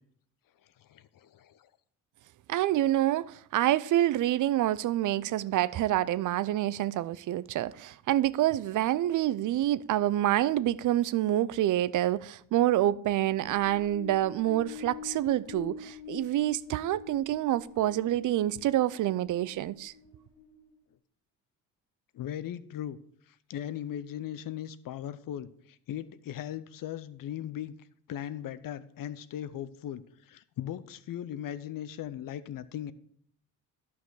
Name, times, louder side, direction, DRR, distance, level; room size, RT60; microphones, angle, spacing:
voice 1, 0.8-1.7 22.1-23.0 23.5-27.7 28.1-32.9, left 11 dB, 50° left, 0.7 m, -38 dB
voice 2, 2.5-19.9, right 13 dB, 45° right, 0.5 m, -27 dB
sound 1, 13.1-20.7, left 6 dB, 80° left, 2.0 m, -46 dB
11.0 x 5.9 x 4.7 m
hypercardioid pair, 55°, 44 cm